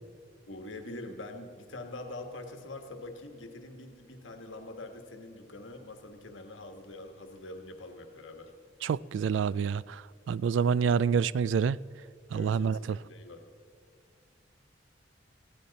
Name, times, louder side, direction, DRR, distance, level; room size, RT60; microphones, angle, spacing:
voice 1, 0.5-8.5 12.3-13.4, left 2 dB, 85° left, 1.4 m, -44 dB
voice 2, 8.8-11.8 12.3-13.0, right 6 dB, 75° right, 0.3 m, -27 dB
20.0 x 15.5 x 4.1 m
head